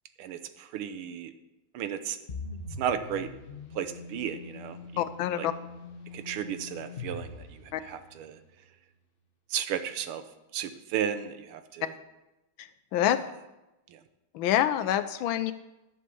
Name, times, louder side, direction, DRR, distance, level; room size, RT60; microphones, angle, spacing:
voice 1, 0.2-1.3 1.7-2.2 2.8-3.3 3.8-5.0 5.3-5.5 6.1-8.4 9.5-10.2 10.5-11.9 13.0-13.2 13.9-14.0, right 9 dB, 85° right, 10 dB, 1.7 m, -34 dB
sound 1, 2.3-8.3, left 3 dB, 45° left, 0.7 m, -43 dB
voice 2, 5.0-5.5 7.7-7.8 12.9-13.2 14.3-15.5, left 11 dB, 75° left, 12 dB, 1.3 m, -26 dB
11.0 x 6.4 x 7.0 m, 0.98 s
omnidirectional pair, 2.3 m